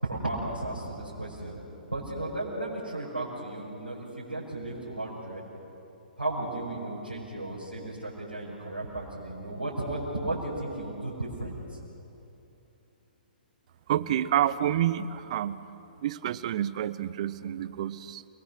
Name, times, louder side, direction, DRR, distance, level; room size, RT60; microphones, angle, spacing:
voice 1, 0.0-1.6 1.9-5.4 6.2-11.8, right 2 dB, 85° right, -6 dB, 5.5 m, -34 dB
voice 2, 13.9-15.6 16.0-18.3, right 11 dB, 45° right, 16 dB, 0.8 m, -28 dB
29.0 x 20.5 x 6.6 m, 2.9 s
figure-of-eight pair, 120°, 5 cm